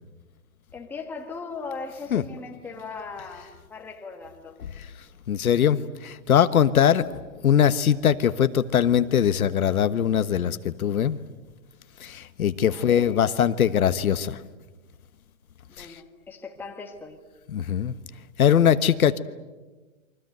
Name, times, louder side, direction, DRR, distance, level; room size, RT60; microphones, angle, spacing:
voice 1, 0.7-4.6 12.6-13.1 15.7-17.2, left 4 dB, 5° left, 2 dB, 1.6 m, -39 dB
voice 2, 5.3-7.1 7.4-11.2 12.0-14.4 15.8-16.0 17.5-18.0 18.4-19.2, left 9 dB, 80° left, 12 dB, 1.4 m, -21 dB
29.0 x 24.0 x 8.0 m, 1.2 s
hypercardioid pair, 165°, 42 cm